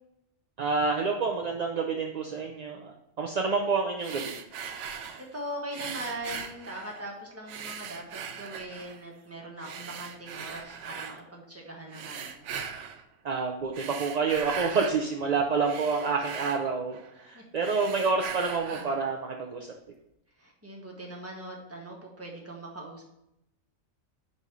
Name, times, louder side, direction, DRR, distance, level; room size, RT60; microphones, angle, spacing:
voice 1, 0.6-4.3 13.2-19.7, right 4 dB, 50° right, 0 dB, 0.5 m, -28 dB
sound 1, 4.0-5.3 5.7-7.1 7.5-9.0 9.6-11.2 11.9-13.0 13.6-15.0 15.4-17.3 17.6-19.0, right 7 dB, 70° right, 0.9 m, -40 dB
voice 2, 4.8-12.4 17.3-17.4 20.4-23.0, right 1 dB, 10° right, -1 dB, 1.2 m, -41 dB
5.1 x 4.2 x 6.0 m, 0.84 s
omnidirectional pair, 1.3 m